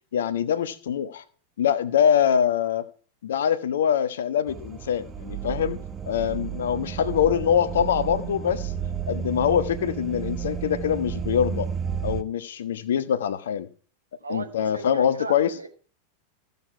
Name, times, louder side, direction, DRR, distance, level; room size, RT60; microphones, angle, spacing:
voice 1, 0.1-1.2 1.6-2.8 3.2-5.8 6.0-8.7 9.1-11.7 12.0-13.7 14.3-15.5, left 8 dB, 60° left, 1.1 m, -24 dB
sound 1, 4.5-12.2, right 8 dB, 20° right, 1.0 m, -32 dB
voice 2, 14.2-15.7, right 3 dB, 80° right, 1.6 m, -36 dB
15.5 x 6.9 x 4.6 m
figure-of-eight pair, 90°, 0 cm